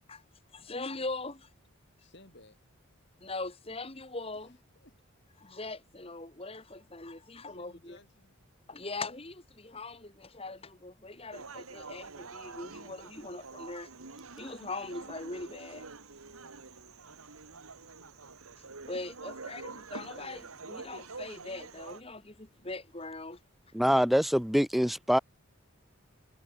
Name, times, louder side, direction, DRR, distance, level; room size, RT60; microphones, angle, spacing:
voice 1, 0.5-1.5 3.2-4.6 5.4-8.0 8.7-13.9 14.4-15.8 18.9-23.4, left 3 dB, 25° left, 2.1 m, -41 dB
voice 2, 2.0-2.6 4.3-5.0 7.5-8.4 19.1-19.5, left 2 dB, 55° left, 6.4 m, -59 dB
sound 1, 11.3-22.0, right 4 dB, 85° right, 2.0 m, -46 dB
voice 3, 23.7-25.2, equal, ahead, 0.3 m, -25 dB
head